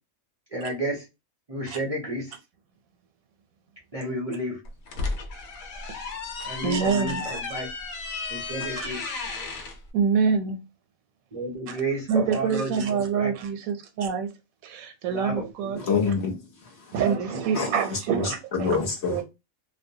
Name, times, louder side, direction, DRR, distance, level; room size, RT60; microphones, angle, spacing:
voice 1, 0.5-1.0 1.5-2.3 3.9-4.6 6.5-7.1 7.5-7.7 8.3-9.0 11.3-12.7 13.1-13.3 15.1-15.4 15.7-15.8, right 1 dB, 40° right, 0.5 m, -31 dB
sound 1, 4.6-9.8, left 4 dB, 85° left, 1.1 m, -34 dB
voice 2, 6.6-7.4 8.6-8.7 9.9-10.6 11.7-11.8 12.1-14.3 14.6-15.8 16.9-18.8 19.1-19.2, right 6 dB, 85° right, 1.0 m, -26 dB
voice 3, 15.8-16.9 17.5-19.2, left 5 dB, 55° left, 1.0 m, -27 dB
2.5 x 2.0 x 2.6 m
omnidirectional pair, 1.4 m